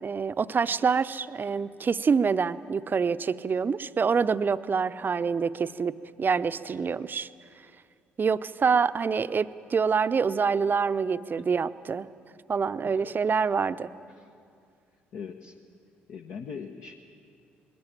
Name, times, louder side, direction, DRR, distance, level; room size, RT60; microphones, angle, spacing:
voice 1, 0.0-7.3 8.2-12.1 12.5-13.9, right 5 dB, 35° right, 13 dB, 0.6 m, -26 dB
voice 2, 12.8-13.2 14.1-14.3 15.1-15.5 16.1-17.0, left 6 dB, 60° left, 4 dB, 0.9 m, -41 dB
20.5 x 17.0 x 9.0 m, 2.4 s
hypercardioid pair, 45°, 6 cm